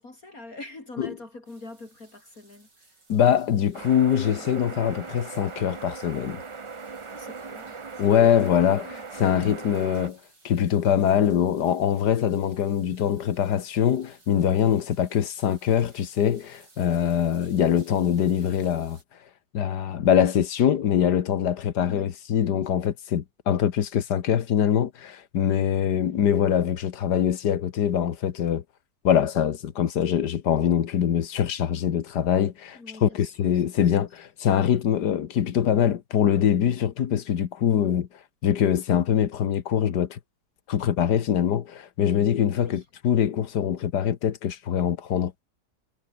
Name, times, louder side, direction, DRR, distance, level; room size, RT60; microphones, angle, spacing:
voice 1, 0.0-3.0 7.1-8.5 8.9-9.0 21.9-22.1 25.9-26.2 32.7-34.0 42.5-42.9, left 2 dB, 55° left, 5.0 m, -45 dB
sound 1, 1.5-19.0, right 2 dB, 80° right, 7.8 m, -58 dB
voice 2, 3.1-6.4 8.0-10.2 10.4-19.0 19.5-28.6 29.0-38.1 38.4-40.2 40.7-45.4, left 9 dB, 70° left, 1.8 m, -23 dB
sound 2, 3.7-10.1, right 4 dB, 40° right, 0.4 m, -39 dB
omnidirectional pair, 1.8 m